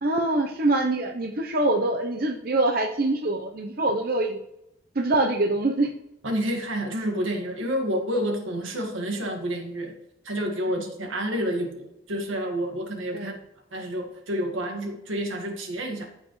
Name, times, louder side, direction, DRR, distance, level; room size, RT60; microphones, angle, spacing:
voice 1, 0.0-4.4 4.9-5.9 10.7-10.8 13.1-13.3, right 2 dB, 50° right, 2 dB, 0.7 m, -24 dB
voice 2, 6.2-9.9 10.2-13.4 13.7-16.1, equal, 85° right, 3 dB, 1.9 m, -29 dB
14.5 x 5.5 x 3.2 m, 0.87 s
head